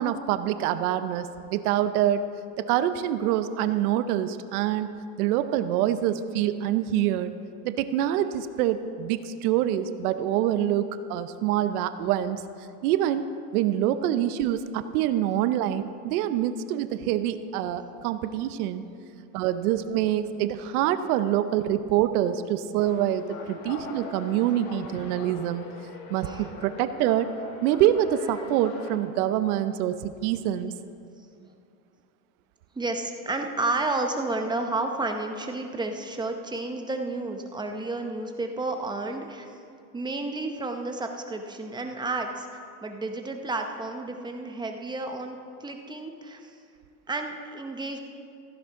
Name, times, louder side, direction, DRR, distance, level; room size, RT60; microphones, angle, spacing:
voice 1, 0.0-2.2 2.6-4.9 5.2-7.3 7.6-12.4 12.8-13.3 13.5-18.8 19.3-25.7 26.1-27.3 27.6-30.7, right 11 dB, 80° right, 12 dB, 0.7 m, -25 dB
sound 1, 22.8-29.0, left 3 dB, 75° left, 1.7 m, -41 dB
voice 2, 26.2-26.5 31.3-31.5 32.8-39.5 39.9-42.5 42.8-46.5 47.1-48.0, right 2 dB, 10° right, 4 dB, 0.7 m, -31 dB
14.5 x 10.5 x 3.7 m, 2.5 s
supercardioid pair, 135°, 44 cm